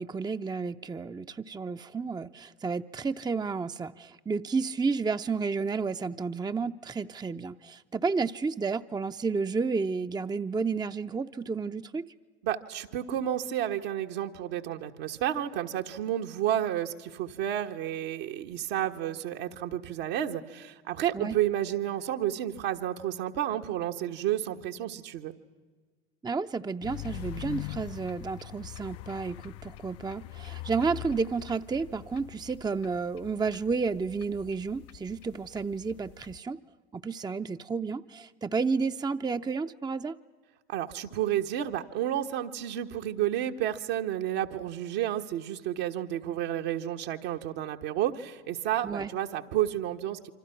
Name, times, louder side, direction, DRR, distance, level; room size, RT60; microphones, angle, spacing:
voice 1, 0.0-12.1 21.1-21.4 26.2-36.6 36.9-40.2 48.8-49.1, right 4 dB, 15° right, 9 dB, 0.7 m, -31 dB
voice 2, 12.4-25.3 40.7-50.3, right 11 dB, 65° right, 4 dB, 1.5 m, -31 dB
sound 1, 26.8-36.4, left 16 dB, 50° left, 0.7 m, -43 dB
27.5 x 25.5 x 5.9 m, 1.4 s
hypercardioid pair, 70°, 31 cm